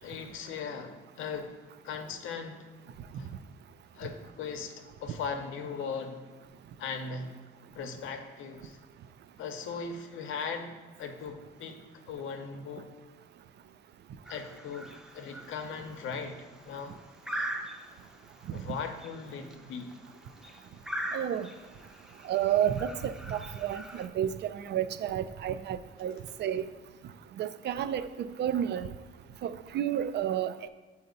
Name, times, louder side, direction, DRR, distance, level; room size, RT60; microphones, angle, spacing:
voice 1, 0.0-1.5 1.8-2.6 3.2-3.3 3.9-6.2 6.8-7.3 7.7-8.8 9.4-12.9 14.3-17.0 17.3-17.5 18.5-19.9, left 5 dB, 85° left, 6 dB, 0.8 m, -39 dB
sound 1, 14.3-24.1, right 1 dB, 5° right, 0.6 m, -42 dB
voice 2, 21.1-21.5 22.2-26.7 27.4-28.9 29.4-30.5, right 10 dB, 60° right, 13 dB, 0.4 m, -31 dB
7.7 x 2.8 x 5.1 m, 1.4 s
cardioid pair, 90°, 20 cm